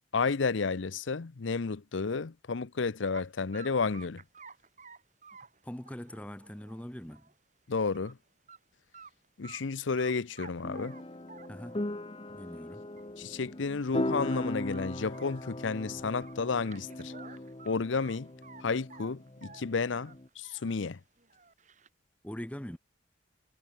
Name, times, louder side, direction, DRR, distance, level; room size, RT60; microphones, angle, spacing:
voice 1, 0.1-4.2 7.7-8.2 9.4-11.0 13.2-17.1 17.7-18.3 18.6-21.0, left 4 dB, 80° left, 0.7 m, -32 dB
sound 1, 3.1-3.3 3.5-7.3 7.7-8.1 8.5-8.6 8.9-9.6 10.0-11.9 12.5-12.6 13.0-13.1 13.4-13.5 13.8-14.0 14.3-15.8 16.2-18.6 18.9-20.8 21.2-21.9, right 5 dB, 40° right, 3.7 m, -52 dB
voice 2, 5.6-7.3 11.5-11.8 12.3-12.8 22.2-22.8, equal, 5° left, 0.7 m, -42 dB
sound 2, 10.6-20.3, left 1 dB, 30° left, 1.0 m, -38 dB
head